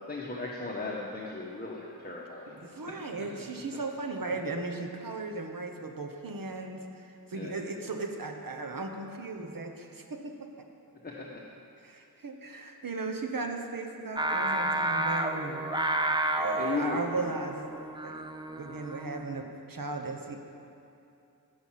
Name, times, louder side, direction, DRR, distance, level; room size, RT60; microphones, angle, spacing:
voice 1, 0.1-2.8 7.3-7.6 10.9-11.4 16.6-17.3, left 3 dB, 25° left, -3 dB, 1.2 m, -36 dB
voice 2, 2.5-10.3 11.8-15.7 16.0-17.8 18.0-18.2 18.6-20.3, right 3 dB, 60° right, 4 dB, 1.2 m, -37 dB
Singing, 14.2-19.4, right 1 dB, 10° right, 0.7 m, -31 dB
15.0 x 5.8 x 7.5 m, 2.7 s
wide cardioid pair, 95°, 38 cm